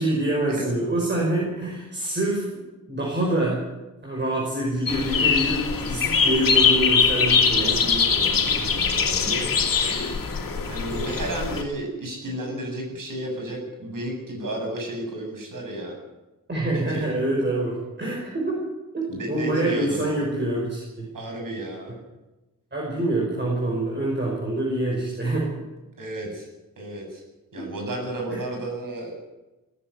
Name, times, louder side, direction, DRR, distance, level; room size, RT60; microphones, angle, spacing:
voice 1, 0.0-2.5 2.9-3.6 4.0-7.9 8.4-8.7 9.7-10.1 16.5-18.5 18.9-21.1 22.7-25.5 27.6-27.7 28.3-28.4, right 1 dB, 35° right, -3 dB, 5.6 m, -26 dB
sound 1, 4.9-11.6, left 5 dB, 80° left, 2.6 m, -22 dB
voice 2, 7.5-9.5 10.7-15.9 16.7-17.1 19.1-20.2 21.1-21.9 26.0-26.5 26.8-27.2 27.5-29.1, right 1 dB, 70° right, 2 dB, 7.8 m, -32 dB
17.5 x 15.0 x 10.0 m, 1.1 s
wide cardioid pair, 165°, 33 cm